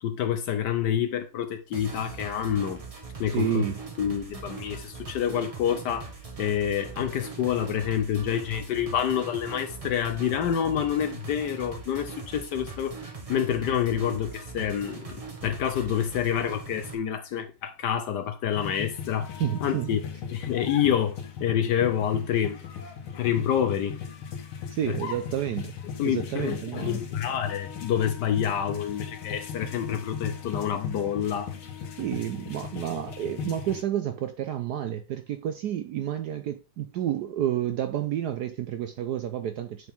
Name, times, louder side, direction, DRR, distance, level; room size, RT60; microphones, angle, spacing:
voice 1, 0.0-2.8 3.2-3.6 4.0-6.1 6.4-12.9 13.3-19.3 19.6-20.0 20.3-22.6 23.1-24.0 24.9-25.0 26.0-31.5, left 9 dB, 70° left, 1.1 m, -27 dB
sound 1, 1.7-17.0, right 4 dB, 25° right, 0.9 m, -41 dB
voice 2, 3.3-3.8 19.4-19.9 24.7-25.7 26.0-27.0 32.0-39.9, right 11 dB, 70° right, 1.0 m, -30 dB
sound 2, 18.5-33.8, left 7 dB, 85° left, 2.0 m, -38 dB
8.2 x 4.5 x 3.5 m
omnidirectional pair, 2.2 m